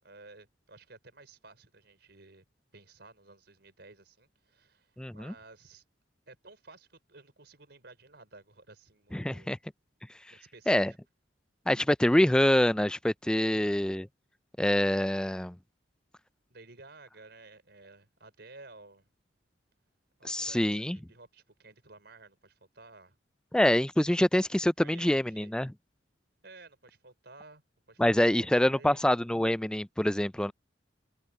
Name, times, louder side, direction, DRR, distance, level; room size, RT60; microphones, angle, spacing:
voice 1, 0.0-2.4 2.7-5.8 6.3-9.5 10.3-11.0 13.5-13.9 16.5-19.1 20.2-23.2 24.8-25.5 26.4-27.6 27.9-29.0, right 3 dB, 65° right, 5.7 m, -54 dB
voice 2, 5.0-5.3 9.1-9.6 10.7-10.9 11.7-14.1 14.6-15.6 20.2-21.0 23.5-25.7 28.0-30.5, left 1 dB, 5° left, 0.3 m, -25 dB
head